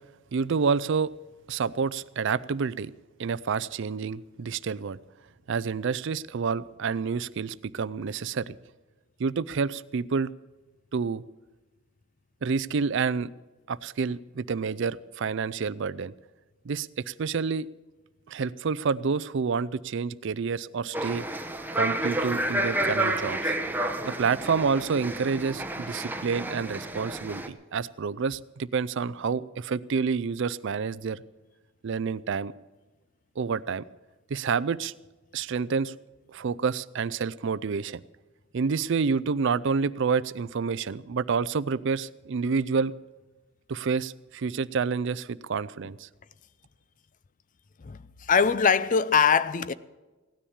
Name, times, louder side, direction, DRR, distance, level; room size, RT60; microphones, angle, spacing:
voice 1, 0.3-1.1 1.5-2.9 3.2-5.0 5.5-8.6 9.2-10.3 10.9-11.2 12.4-13.3 13.7-16.1 16.6-17.7 18.3-21.3 21.7-23.5 24.0-31.2 31.8-32.5 33.4-33.8 34.3-34.9 35.3-35.9 36.3-38.0 38.5-42.9 43.7-46.1, right 5 dB, 65° right, 0.5 m, -28 dB
sound 1, 20.9-27.5, right 1 dB, 10° right, 0.8 m, -30 dB
voice 2, 47.8-49.7, left 6 dB, 40° left, 0.5 m, -22 dB
16.5 x 10.0 x 7.1 m
head